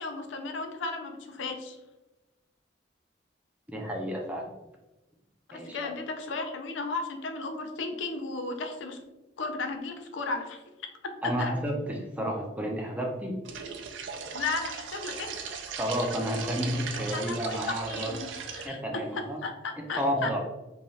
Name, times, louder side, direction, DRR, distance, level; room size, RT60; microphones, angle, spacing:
voice 1, 0.0-1.8 5.5-9.0 9.4-10.6 11.0-11.6 14.3-15.4 17.0-20.3, left 3 dB, 75° left, 5 dB, 0.4 m, -35 dB
voice 2, 3.7-4.5 5.5-5.9 11.2-13.4 15.8-18.1 18.6-19.4 20.0-20.4, equal, 10° right, 0 dB, 0.4 m, -31 dB
sound 1, 13.4-18.7, right 6 dB, 75° right, 0.4 m, -38 dB
2.7 x 2.2 x 3.1 m, 1.0 s
head